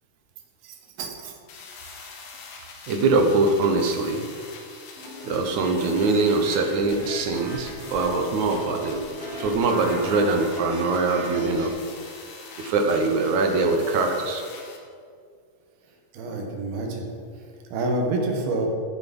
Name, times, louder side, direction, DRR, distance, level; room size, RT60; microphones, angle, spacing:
voice 1, 1.0-1.3 2.9-4.2 5.2-9.0 9.4-11.7 12.6-14.4, right 3 dB, 65° right, 3 dB, 2.0 m, -23 dB
sound 1, 1.5-14.8, left 4 dB, 80° left, 3.1 m, -44 dB
sound 2, 5.0-11.7, equal, 30° right, 2.4 m, -38 dB
voice 2, 16.1-17.1 17.7-18.7, right 2 dB, 85° right, 1 dB, 3.4 m, -26 dB
15.0 x 6.8 x 5.4 m, 2.2 s
omnidirectional pair, 4.1 m